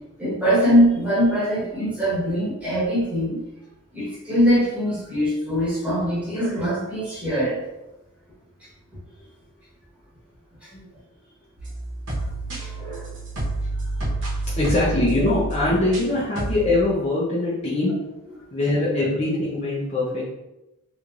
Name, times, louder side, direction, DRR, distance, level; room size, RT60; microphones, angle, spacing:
voice 1, 0.2-3.4 3.9-7.6 10.6-10.7 12.6-13.1, equal, 5° right, -9 dB, 1.3 m, -22 dB
sound 1, 11.6-16.1 16.4-16.8, right 2 dB, 55° right, 1.1 m, -29 dB
voice 2, 14.6-17.9 18.5-20.3, left 2 dB, 30° left, -8 dB, 0.6 m, -22 dB
3.3 x 3.1 x 2.5 m, 0.95 s
head